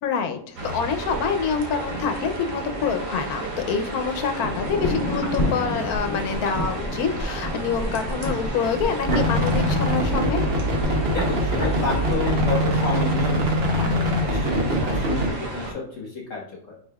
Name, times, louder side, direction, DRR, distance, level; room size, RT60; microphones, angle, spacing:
voice 1, 0.0-10.5, left 6 dB, 85° left, 8 dB, 1.1 m, -26 dB
sound 1, 0.6-15.7, right 2 dB, 65° right, 1.3 m, -33 dB
sound 2, 4.4-13.4 13.7-13.8, left 1 dB, 40° left, 1.6 m, -30 dB
sound 3, 9.1-15.3, equal, 50° right, 1.0 m, -23 dB
voice 2, 11.1-16.4, left 4 dB, 60° left, -4 dB, 1.3 m, -30 dB
5.2 x 4.3 x 2.3 m, 0.66 s
omnidirectional pair, 1.6 m